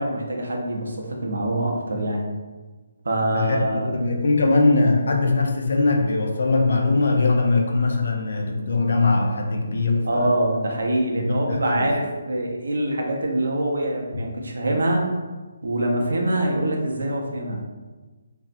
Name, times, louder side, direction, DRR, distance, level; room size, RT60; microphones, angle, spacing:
voice 1, 0.0-2.3 3.0-3.9 10.0-15.0 15.6-17.6, right 1 dB, 90° right, 0 dB, 0.5 m, -24 dB
voice 2, 3.9-10.3 11.2-11.9, left 3 dB, 65° left, 1 dB, 0.4 m, -21 dB
2.5 x 2.0 x 2.5 m, 1.3 s
hypercardioid pair, 170°, 0 cm